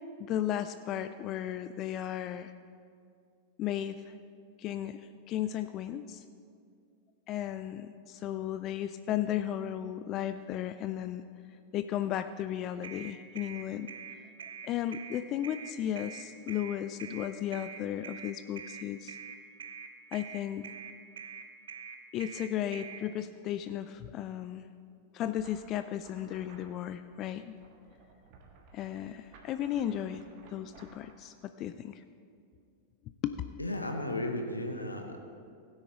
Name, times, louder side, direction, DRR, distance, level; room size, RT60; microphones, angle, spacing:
voice 1, 0.2-2.5 3.6-4.2 4.6-6.2 7.3-11.2 11.7-13.9 14.6-19.2 20.1-20.7 22.1-24.7 25.1-27.6 28.7-30.2 30.5-32.0 33.2-33.4, left 11 dB, 35° left, 11 dB, 0.3 m, -35 dB
sound 1, 12.8-23.0, right 6 dB, 65° right, 0.6 m, -44 dB
sound 2, 25.4-31.1, right 4 dB, 45° right, 1.5 m, -58 dB
voice 2, 33.6-35.2, left 1 dB, 85° left, 4 dB, 0.9 m, -34 dB
16.0 x 9.6 x 2.9 m, 2.3 s
figure-of-eight pair, 90°, 0 cm